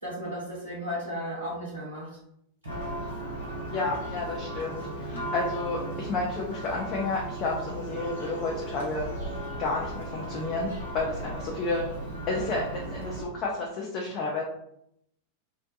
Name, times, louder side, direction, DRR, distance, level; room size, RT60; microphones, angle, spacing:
voice 1, 0.0-2.1 2.6-2.7, equal, 80° right, -7 dB, 0.8 m, -34 dB
Church bell, 2.7-13.2, right 1 dB, 70° left, 0.7 m, -36 dB
voice 2, 3.7-9.1 9.6-11.8 12.3-14.4, left 3 dB, 35° left, -2 dB, 0.5 m, -31 dB
2.6 x 2.1 x 2.7 m, 0.74 s
figure-of-eight pair, 90°, 0 cm